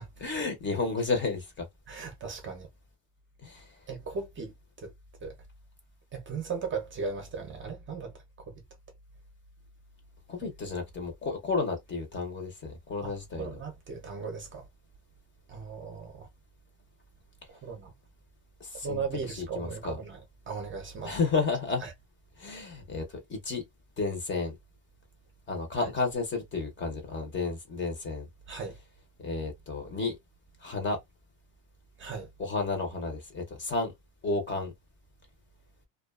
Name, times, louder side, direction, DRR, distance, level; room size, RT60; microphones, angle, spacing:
voice 1, 0.2-1.6 3.4-3.7 10.3-13.5 18.6-19.0 19.3-20.0 21.0-21.8 22.4-23.6 24.0-24.5 25.5-28.3 29.2-30.2 30.6-31.0 32.4-33.9 34.2-34.7, left 3 dB, 25° left, 0.7 m, -32 dB
voice 2, 1.9-2.7 3.9-4.5 4.8-4.9 5.2-5.3 6.1-8.1 8.5-8.6 13.0-13.1 13.4-14.6 15.5-16.3 17.5-17.9 18.8-20.2 20.5-21.2 21.8-21.9 28.5-28.8 32.0-32.3, right 5 dB, 30° right, 0.6 m, -37 dB
2.3 x 2.3 x 2.3 m
cardioid pair, 145°, 42 cm